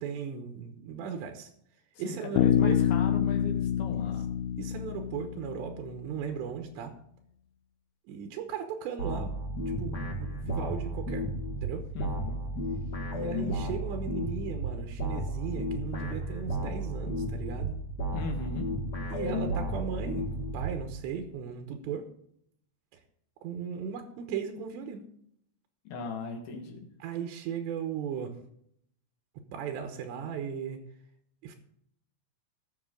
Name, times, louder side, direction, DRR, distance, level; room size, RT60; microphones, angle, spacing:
voice 1, 0.0-1.5 2.0-2.8 4.6-6.9 8.1-9.3 9.8-11.2 11.6-11.8 13.1-17.7 19.1-22.1 23.4-25.1 27.0-28.3 29.5-30.8 31.4-31.6, right 7 dB, 85° right, 5 dB, 3.3 m, -37 dB
voice 2, 2.0-4.3 11.9-12.4 18.1-18.7 25.9-26.9, left 4 dB, 70° left, 2 dB, 3.2 m, -38 dB
Bass guitar, 2.4-6.1, left 10 dB, 90° left, 2.9 m, -27 dB
sound 1, 9.0-21.2, equal, 40° left, 1.4 m, -33 dB
19.5 x 6.7 x 3.8 m, 0.71 s
omnidirectional pair, 5.0 m